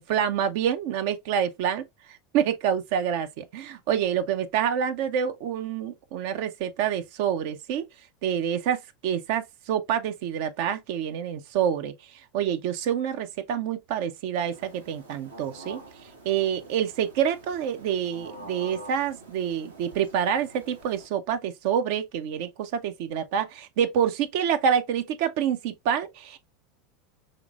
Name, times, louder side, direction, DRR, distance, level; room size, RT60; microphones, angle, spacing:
voice 1, 0.0-7.9 8.2-15.8 16.2-26.4, right 8 dB, 55° right, 0.4 m, -27 dB
sound 1, 14.5-21.1, right 2 dB, 80° right, 1.1 m, -47 dB
5.0 x 3.1 x 2.3 m
figure-of-eight pair, 80°, 0 cm